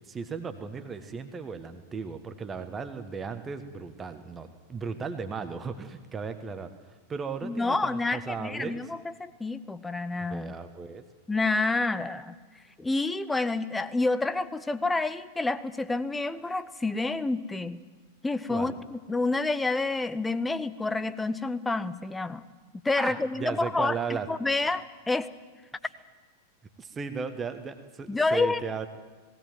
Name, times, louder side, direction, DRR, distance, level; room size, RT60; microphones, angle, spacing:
voice 1, 0.1-6.7 7.1-8.8 10.2-11.0 18.5-18.7 22.9-24.3 24.6-24.7 26.8-28.9, right 5 dB, 20° right, 8 dB, 1.4 m, -36 dB
voice 2, 7.4-10.5 11.3-12.4 12.8-17.8 18.2-22.4 22.8-24.0 24.3-25.3 28.1-28.6, left 3 dB, 10° left, 13 dB, 0.9 m, -28 dB
18.5 x 17.0 x 9.4 m, 1.4 s
figure-of-eight pair, 90°, 0 cm